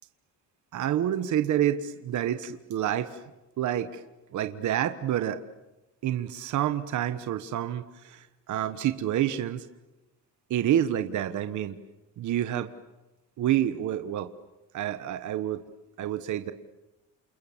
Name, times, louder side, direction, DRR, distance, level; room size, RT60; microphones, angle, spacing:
voice 1, 0.7-3.2 3.6-4.0 4.3-5.4 6.0-9.7 10.5-11.8 12.2-12.7 13.4-14.3 14.7-15.6 16.0-16.5, right 11 dB, 55° right, 10 dB, 1.3 m, -28 dB
28.5 x 28.5 x 7.3 m, 1.0 s
cardioid pair, 165°, 36 cm